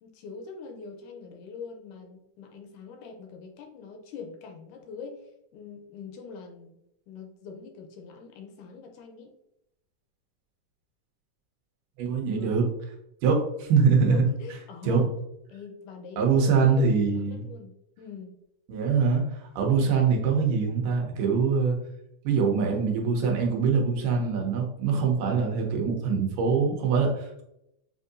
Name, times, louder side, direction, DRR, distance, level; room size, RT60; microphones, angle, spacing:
voice 1, 0.0-6.8 7.1-9.3 12.2-12.5 14.1-15.1 15.5-18.4 19.7-20.0, left 5 dB, 80° left, 3 dB, 2.0 m, -43 dB
voice 2, 12.0-12.7 13.2-14.2 14.8-15.0 16.2-17.5 18.7-21.8 22.2-27.4, right 5 dB, 90° right, 1 dB, 2.4 m, -23 dB
7.4 x 2.6 x 2.5 m, 0.81 s
omnidirectional pair, 3.7 m